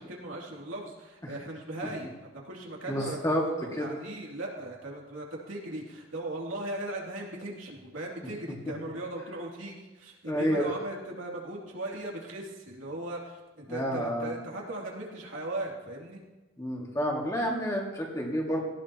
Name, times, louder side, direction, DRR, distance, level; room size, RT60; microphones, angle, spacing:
voice 1, 0.0-2.1 2.4-16.2, right 1 dB, 80° right, -2 dB, 3.0 m, -38 dB
voice 2, 2.9-3.4 3.8-3.9 10.3-10.7 13.7-14.3 16.6-18.6, equal, 15° left, -1 dB, 2.2 m, -29 dB
18.0 x 14.5 x 3.0 m, 1.2 s
head